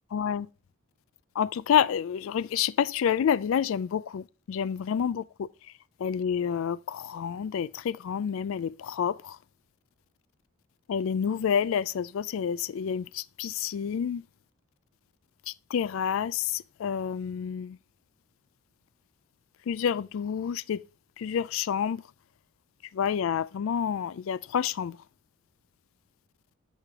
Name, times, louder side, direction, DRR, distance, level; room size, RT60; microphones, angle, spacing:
voice 1, 0.1-0.5 1.4-5.5 6.0-9.4 10.9-14.2 15.5-17.8 19.7-20.8 21.2-22.0 22.9-25.0, left 8 dB, 70° left, 0.3 m, -28 dB
6.6 x 6.4 x 3.5 m
head